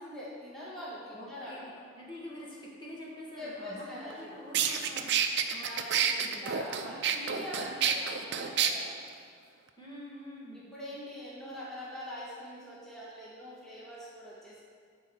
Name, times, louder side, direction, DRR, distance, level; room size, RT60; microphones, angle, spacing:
voice 1, 0.0-1.7 3.4-4.3 5.6-9.0 10.5-14.6, left 1 dB, ahead, -8 dB, 1.5 m, -43 dB
voice 2, 1.1-5.2 5.5-6.5 9.8-10.6, left 1 dB, 20° left, -5 dB, 1.7 m, -46 dB
sound 1, 4.1-4.2 4.5-8.7, right 8 dB, 60° right, 0.6 m, -29 dB
9.7 x 4.6 x 6.9 m, 2.1 s
head